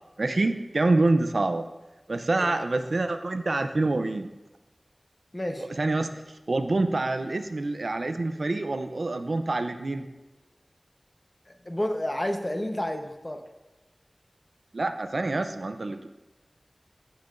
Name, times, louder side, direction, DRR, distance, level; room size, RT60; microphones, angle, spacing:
voice 1, 0.2-1.7 2.1-4.3 5.6-6.2 6.5-10.1 14.7-16.1, right 2 dB, 75° right, 8 dB, 0.5 m, -26 dB
voice 2, 5.3-5.7 11.5-13.4, left 1 dB, 30° left, 5 dB, 0.9 m, -30 dB
14.5 x 5.7 x 2.5 m, 1.1 s
wide cardioid pair, 45°, 0 cm